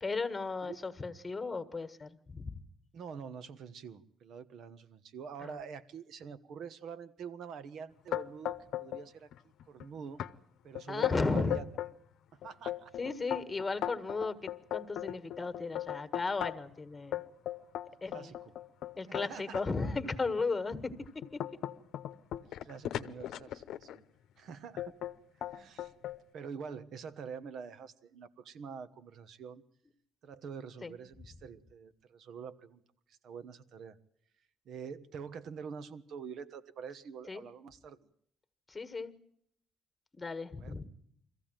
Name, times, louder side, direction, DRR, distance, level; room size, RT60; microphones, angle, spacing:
voice 1, 0.0-2.6 5.4-5.6 10.9-11.6 13.0-17.2 18.0-18.3 19.0-20.9 30.8-30.9 37.3-37.5 38.7-39.1 40.1-40.9, left 3 dB, 25° left, 10 dB, 1.7 m, -35 dB
voice 2, 2.9-9.3 9.7-10.2 10.6-11.6 12.3-12.9 18.1-18.4 19.1-19.6 22.4-24.0 24.4-24.9 25.4-25.9 26.3-29.6 30.2-32.8 33.1-34.0 34.6-38.0 40.6-40.7, right 6 dB, 70° right, 13 dB, 1.3 m, -46 dB
sound 1, 8.1-9.0 9.3-9.8 10.2-10.3 10.7-11.9 12.4-16.7 17.1-19.7 20.3-20.4 20.9-24.0 24.8-25.1 25.4-26.2, left 12 dB, 80° left, 0.8 m, -37 dB
22.5 x 15.0 x 9.1 m, 0.71 s
cardioid pair, 90°, 0 cm